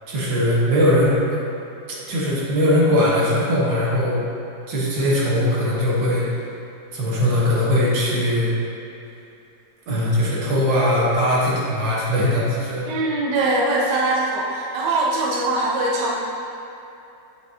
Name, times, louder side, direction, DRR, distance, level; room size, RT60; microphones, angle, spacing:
voice 1, 0.1-1.2 2.1-4.2 4.7-6.3 6.9-8.5 9.9-12.9, left 1 dB, 90° right, -6 dB, 1.9 m, -20 dB
voice 2, 12.8-16.2, right 2 dB, 70° right, -4 dB, 1.3 m, -22 dB
8.0 x 5.2 x 2.8 m, 2.8 s
omnidirectional pair, 1.9 m